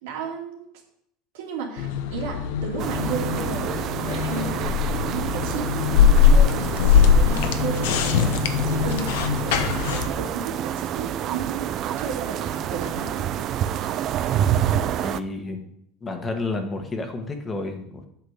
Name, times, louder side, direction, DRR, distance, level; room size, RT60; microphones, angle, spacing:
voice 1, 0.0-0.6 1.3-3.7 4.0-13.2, right 4 dB, 85° right, 0 dB, 2.8 m, -34 dB
sound 1, 1.8-10.1, left 7 dB, 80° left, 1.0 m, -21 dB
sound 2, 2.8-15.2, right 10 dB, 45° right, 0.5 m, -28 dB
voice 2, 15.0-15.7 16.0-18.1, left 3 dB, 20° left, 5 dB, 1.5 m, -30 dB
8.4 x 6.5 x 6.6 m, 0.73 s
supercardioid pair, 130°, 0 cm